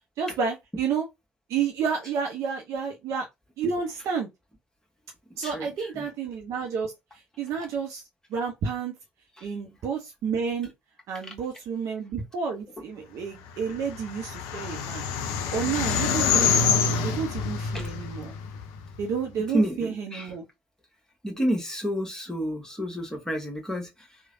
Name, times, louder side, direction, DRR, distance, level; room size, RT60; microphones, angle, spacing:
voice 1, 0.2-1.1 1.5-3.3 3.6-4.3 5.4-6.9 7.4-8.0 8.3-8.9 9.4-10.7 11.1-15.0 15.5-18.4 19.0-20.4, right 6 dB, 55° right, 0.6 m, -30 dB
voice 2, 5.4-6.1 9.4-9.5 11.2-11.3 17.7-17.9 19.5-20.3 21.2-24.2, equal, 10° left, 1.2 m, -30 dB
sound 1, 13.6-19.0, left 6 dB, 60° left, 0.5 m, -26 dB
3.1 x 2.1 x 2.5 m
figure-of-eight pair, 50°, 6 cm